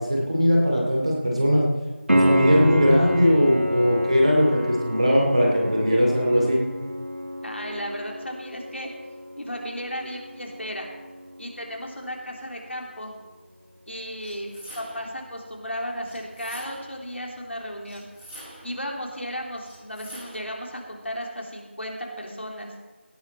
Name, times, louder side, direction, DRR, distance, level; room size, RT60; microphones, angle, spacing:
voice 1, 0.0-1.6 2.1-6.6, equal, 30° right, -1 dB, 2.6 m, -20 dB
Piano, 2.1-12.7 16.1-16.2, left 1 dB, 85° right, 1.6 m, -29 dB
voice 2, 7.4-8.9 9.3-10.9 11.4-13.1 13.9-18.0 18.6-22.9, equal, 70° left, 0 dB, 3.4 m, -34 dB
sound 1, 14.2-15.2 16.0-17.0 17.8-18.8 19.6-20.6, equal, 5° left, 3.3 m, -45 dB
17.5 x 10.5 x 4.3 m, 1.3 s
figure-of-eight pair, 175°, 7 cm